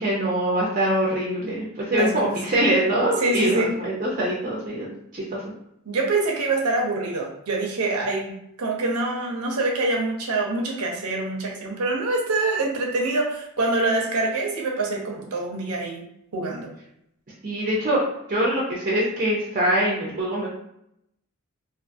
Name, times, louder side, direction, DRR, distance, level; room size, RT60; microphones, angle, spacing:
voice 1, 0.0-5.4 17.4-18.0 18.3-20.5, right 1 dB, 35° right, -4 dB, 0.5 m, -23 dB
voice 2, 2.0-2.6 3.2-3.7 5.9-16.0 16.3-16.7, right 2 dB, 80° right, 0 dB, 0.7 m, -25 dB
2.5 x 2.5 x 2.5 m, 0.77 s
head